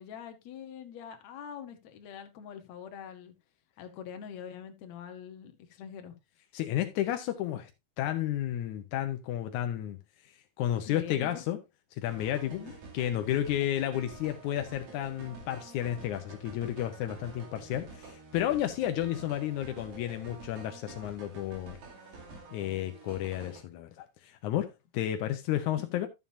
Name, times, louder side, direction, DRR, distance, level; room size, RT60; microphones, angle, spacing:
voice 1, 0.0-3.3 3.8-6.1 10.9-11.4 12.4-12.7, left 8 dB, 65° left, 1.9 m, -44 dB
voice 2, 6.5-7.7 8.0-10.0 10.6-11.6 11.9-12.6 12.9-21.8 22.5-26.1, left 12 dB, 80° left, 1.8 m, -32 dB
sound 1, 12.1-23.6, right 3 dB, 80° right, 4.4 m, -48 dB
13.0 x 7.3 x 2.7 m
omnidirectional pair, 4.3 m